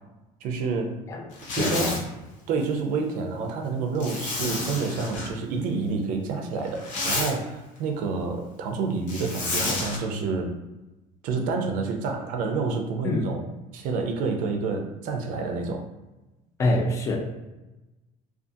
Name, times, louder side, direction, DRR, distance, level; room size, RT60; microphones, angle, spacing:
voice 1, 0.4-1.0 1.6-1.9 2.5-10.5 11.2-15.8, right 4 dB, 55° right, 3 dB, 0.5 m, -28 dB
Zipper (clothing), 1.3-2.0 4.0-5.3 6.6-7.3 9.1-10.0, left 2 dB, 55° left, 0.8 m, -30 dB
voice 2, 1.6-2.0 13.0-13.2 16.6-17.2, left 2 dB, 20° left, 1 dB, 0.3 m, -25 dB
2.5 x 2.4 x 2.6 m, 1.0 s
cardioid pair, 170°, 16 cm